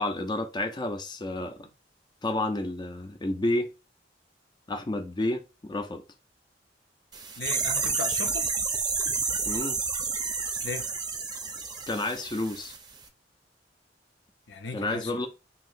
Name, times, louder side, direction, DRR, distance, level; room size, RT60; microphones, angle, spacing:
voice 1, 0.0-1.7 2.2-3.7 4.7-6.0 9.4-9.8 11.9-12.7 14.7-15.3, left 2 dB, 25° left, 0.5 m, -30 dB
sound 1, 7.1-12.8 13.0-13.1, right 4 dB, 25° right, 0.6 m, -30 dB
voice 2, 7.4-8.5 10.6-10.9 14.5-15.1, left 4 dB, 70° left, 0.7 m, -36 dB
2.8 x 2.8 x 4.3 m
head